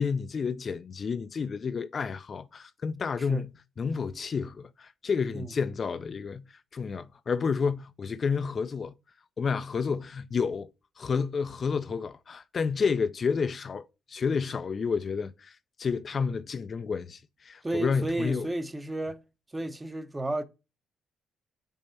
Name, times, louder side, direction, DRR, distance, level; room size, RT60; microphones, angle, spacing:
voice 1, 0.0-3.5 3.8-8.9 9.4-10.7 11.0-18.5, left 5 dB, 45° left, 0.4 m, -30 dB
voice 2, 17.6-19.2 19.5-20.4, right 1 dB, 15° right, 0.8 m, -32 dB
5.4 x 4.2 x 5.6 m
cardioid pair, 90°, 0 cm